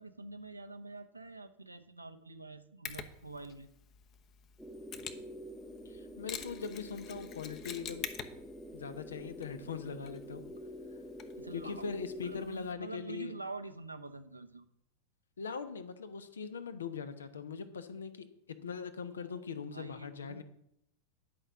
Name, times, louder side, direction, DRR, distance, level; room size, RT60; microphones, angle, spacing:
voice 1, 0.0-3.7 11.4-14.7 19.1-19.4 19.7-20.4, right 3 dB, 85° right, 7 dB, 0.9 m, -46 dB
Mechanisms, 2.8-12.7, left 8 dB, 35° left, 1.0 m, -48 dB
sound 1, 4.6-12.5, equal, 5° right, 0.8 m, -47 dB
voice 2, 5.8-8.1 8.7-10.5 11.5-13.3 15.4-20.4, left 6 dB, 70° left, 11 dB, 1.0 m, -41 dB
11.5 x 5.7 x 7.5 m, 0.75 s
figure-of-eight pair, 90°, 0 cm